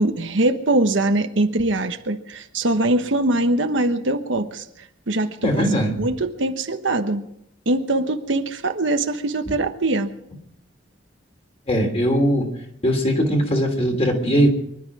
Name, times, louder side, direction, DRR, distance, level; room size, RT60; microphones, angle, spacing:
voice 1, 0.0-4.6 5.1-5.6 6.0-7.2 7.7-10.1, right 2 dB, 70° right, 7 dB, 1.2 m, -22 dB
voice 2, 5.4-6.0 11.7-12.5 12.8-14.5, equal, 35° left, 2 dB, 3.2 m, -20 dB
24.5 x 11.5 x 4.9 m, 0.76 s
head